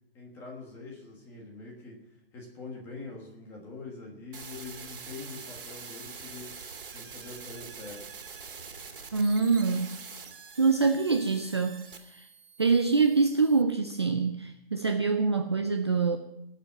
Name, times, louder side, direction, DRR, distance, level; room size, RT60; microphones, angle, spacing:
voice 1, 0.1-6.5 6.9-8.1, left 3 dB, 10° left, -1 dB, 1.4 m, -44 dB
sound 1, 4.3-13.6, right 5 dB, 60° right, 2.5 m, -45 dB
voice 2, 9.1-10.0 10.6-12.3 12.6-16.2, right 4 dB, 30° right, 6 dB, 0.5 m, -25 dB
18.0 x 7.4 x 7.4 m, 0.85 s
hypercardioid pair, 170°, 30 cm